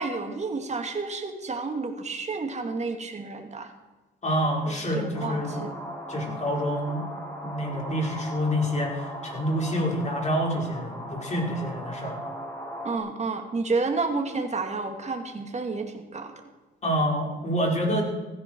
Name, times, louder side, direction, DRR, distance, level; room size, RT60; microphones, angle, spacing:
voice 1, 0.0-3.7 4.7-5.7 6.3-6.4 12.8-16.3, right 3 dB, 35° right, 5 dB, 2.5 m, -30 dB
voice 2, 4.2-5.6 6.1-7.0 7.4-12.2 16.8-18.0, equal, 35° left, 0 dB, 5.2 m, -27 dB
sound 1, 5.1-13.0, equal, 10° left, 5.3 m, -38 dB
16.0 x 14.0 x 4.7 m, 1.2 s
cardioid pair, 90°, 20 cm